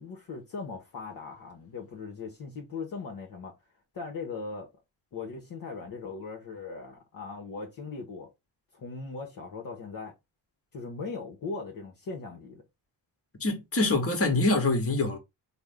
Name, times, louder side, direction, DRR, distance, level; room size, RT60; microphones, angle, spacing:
voice 1, 0.0-3.5 3.9-4.7 5.1-8.3 8.7-10.1 10.7-12.6, left 4 dB, 50° left, 0.9 m, -39 dB
voice 2, 13.4-15.2, left 2 dB, 30° left, 1.2 m, -25 dB
3.4 x 2.1 x 3.4 m
cardioid pair, 70°, 44 cm